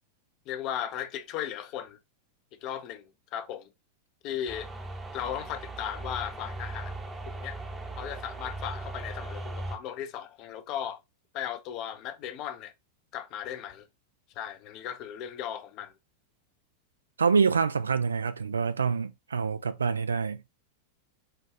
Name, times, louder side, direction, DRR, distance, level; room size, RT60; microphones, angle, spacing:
voice 1, 0.5-2.0 2.6-3.7 4.2-4.7 5.1-6.9 7.3-7.6 8.0-11.0 11.3-12.7 13.1-13.9 14.3-15.9, left 10 dB, 40° left, 0.5 m, -36 dB
sound 1, 4.5-9.8, right 2 dB, 15° right, 0.8 m, -38 dB
voice 2, 17.2-20.4, right 5 dB, 75° right, 0.3 m, -26 dB
4.5 x 2.3 x 3.4 m
figure-of-eight pair, 90°, 0 cm